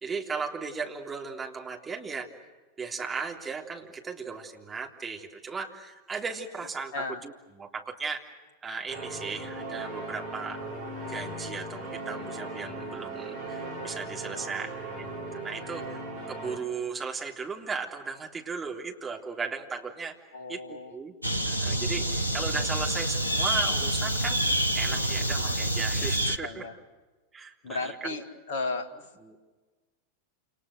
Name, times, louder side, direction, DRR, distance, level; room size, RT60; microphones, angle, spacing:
voice 1, 0.0-2.3 2.8-8.2 8.6-10.6 11.1-16.0 16.3-20.2 20.5-21.2 21.5-24.4 24.7-26.7 27.3-28.2 29.2-29.4, right 5 dB, 15° right, 1 dB, 3.4 m, -36 dB
sound 1, 8.9-16.6, right 2 dB, 55° right, 7.8 m, -38 dB
voice 2, 20.3-21.0 26.4-26.7 27.6-28.9, left 3 dB, 50° left, 8 dB, 2.3 m, -34 dB
sound 2, 21.2-26.4, right 1 dB, 90° right, 1.2 m, -27 dB
29.0 x 28.5 x 6.6 m, 1.3 s
figure-of-eight pair, 90°, 0 cm